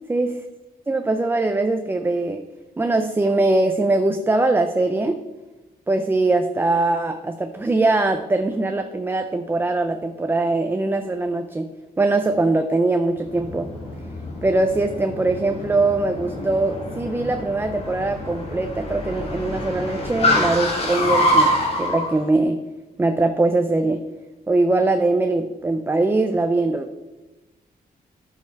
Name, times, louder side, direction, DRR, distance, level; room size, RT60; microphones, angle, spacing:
voice 1, 0.9-2.4 2.8-5.2 5.9-11.7 12.0-13.7 14.4-22.6 23.0-24.0 24.5-26.9, right 2 dB, 15° right, 7 dB, 0.4 m, -21 dB
Car, 13.2-22.1, left 1 dB, 40° left, 2.1 m, -25 dB
12.5 x 5.5 x 4.5 m, 1.1 s
wide cardioid pair, 175°, 16 cm